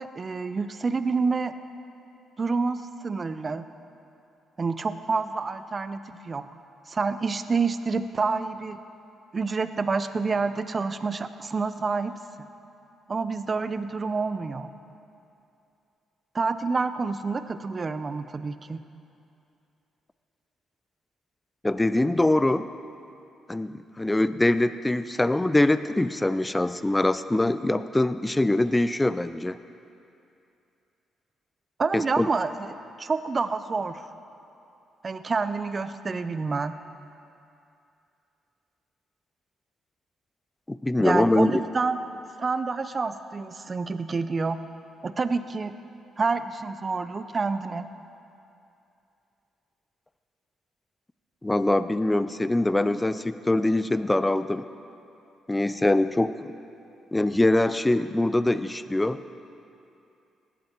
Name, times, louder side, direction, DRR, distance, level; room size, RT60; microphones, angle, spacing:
voice 1, 0.0-1.5 2.4-3.6 4.6-6.5 6.9-8.8 9.3-12.2 13.1-14.7 16.3-18.8 31.8-32.7 33.0-34.0 35.0-36.7 41.0-42.0 42.4-44.6 45.0-45.8 46.2-47.9, right 4 dB, 35° right, 11 dB, 0.6 m, -28 dB
voice 2, 21.6-22.7 23.5-29.6 31.9-32.3 40.7-41.6 51.4-54.6 55.5-56.5 57.1-59.2, left 1 dB, 15° left, 13 dB, 0.4 m, -23 dB
16.5 x 11.0 x 4.5 m, 2.7 s
cardioid pair, 90°, 0 cm